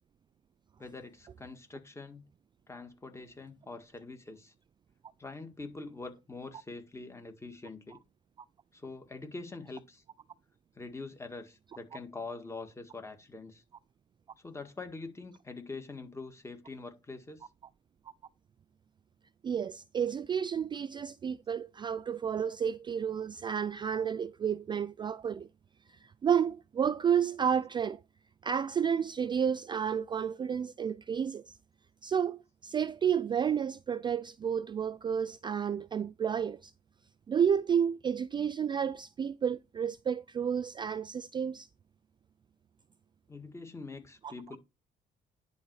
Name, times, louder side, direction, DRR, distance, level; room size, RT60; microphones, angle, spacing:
voice 1, 0.8-2.3 2.7-4.5 5.2-8.0 8.7-10.0 10.8-13.6 14.4-17.4 43.3-44.6, left 3 dB, 15° left, 1.9 m, -44 dB
voice 2, 19.4-25.5 25.9-28.0 28.4-31.6 32.0-36.7 37.3-41.7 44.2-44.3, right 7 dB, 25° right, 0.3 m, -31 dB
10.5 x 4.1 x 4.8 m
cardioid pair, 110°, 17 cm